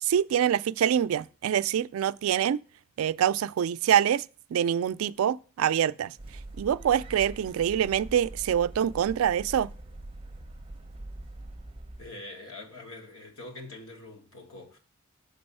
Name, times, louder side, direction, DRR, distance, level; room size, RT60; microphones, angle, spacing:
voice 1, 0.0-2.6 3.0-4.3 4.5-6.2 6.6-9.7, right 9 dB, 85° right, 0.3 m, -25 dB
sound 1, 6.2-12.1, right 2 dB, 25° right, 0.6 m, -43 dB
voice 2, 12.0-14.8, left 2 dB, 80° left, 1.8 m, -44 dB
6.9 x 3.9 x 5.4 m
head